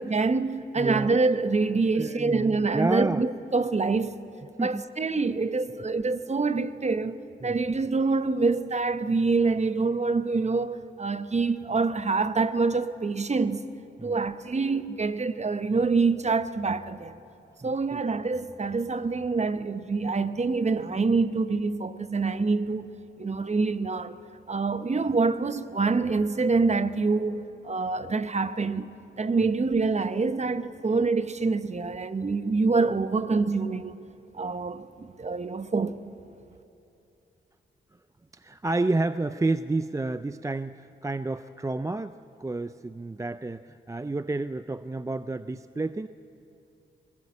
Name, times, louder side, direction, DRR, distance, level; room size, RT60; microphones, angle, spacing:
voice 1, 0.0-4.2 4.6-13.6 14.0-17.2 17.6-24.2 24.5-28.9 29.2-34.0 34.3-36.0, right 4 dB, 35° right, 0.9 m, -26 dB
voice 2, 0.8-1.1 1.9-3.2 4.6-4.8 7.4-7.6 14.0-14.2 17.6-18.0 38.3-46.1, right 2 dB, 15° right, 0.4 m, -30 dB
21.5 x 21.0 x 8.5 m
cardioid pair, 75°, 20 cm